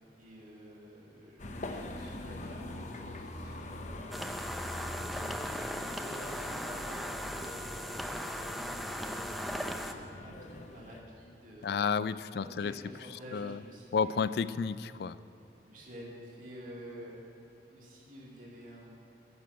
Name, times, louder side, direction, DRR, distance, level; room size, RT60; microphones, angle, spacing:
voice 1, 0.2-4.3 5.0-7.7 8.2-11.7 12.4-14.3 15.6-17.2 17.7-18.9, right 1 dB, 50° right, -3 dB, 2.3 m, -50 dB
sound 1, 1.4-11.0, left 1 dB, 45° left, 0.8 m, -44 dB
sound 2, 4.1-9.9, equal, ahead, 0.5 m, -38 dB
voice 2, 11.6-12.7 13.3-13.6 13.9-15.2, left 6 dB, 60° left, 16 dB, 0.3 m, -31 dB
11.0 x 7.0 x 9.2 m, 2.7 s
head